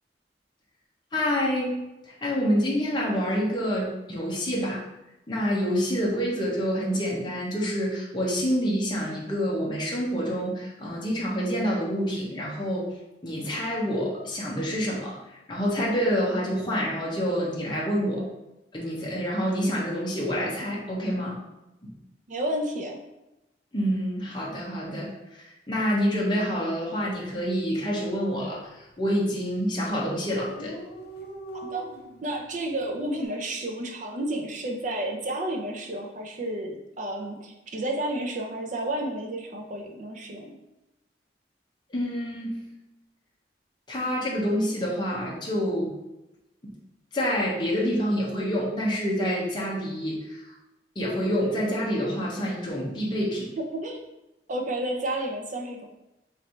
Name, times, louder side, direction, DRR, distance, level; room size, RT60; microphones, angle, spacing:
voice 1, 1.1-1.8 2.1-4.8 5.3-12.9 13.2-18.2 18.7-21.4 21.8-21.9 23.7-30.7 41.9-42.6 43.9-45.9 46.6-46.7 47.1-50.5 50.9-53.5, equal, 25° left, -4 dB, 0.8 m, -27 dB
voice 2, 22.3-23.0 31.5-31.9 32.2-40.6 53.6-54.0 54.5-55.9, right 1 dB, 45° right, 2 dB, 0.5 m, -31 dB
Dog, 27.0-27.3 27.6-27.7 27.9-28.6 29.2-29.5 29.8-29.9 30.1-30.2 30.3-33.3, right 1 dB, 60° left, 0.5 m, -42 dB
3.2 x 2.6 x 4.3 m, 0.95 s
head